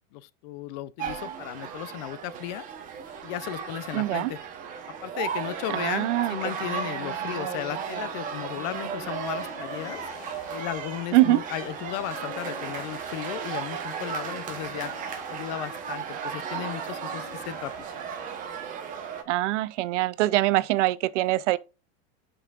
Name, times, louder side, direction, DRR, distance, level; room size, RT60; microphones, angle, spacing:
voice 1, 0.1-2.6 3.2-4.4 5.0-10.0 10.5-17.7, left 14 dB, 40° left, 0.4 m, -35 dB
sound 1, 1.0-19.2, right 7 dB, 20° right, 0.9 m, -35 dB
voice 2, 3.9-4.3 5.7-6.4 11.1-11.4 19.3-21.6, right 17 dB, 75° right, 0.6 m, -23 dB
sound 2, 8.7-18.6, left 6 dB, 20° left, 1.0 m, -48 dB
8.3 x 5.4 x 2.4 m
supercardioid pair, 170°, 36 cm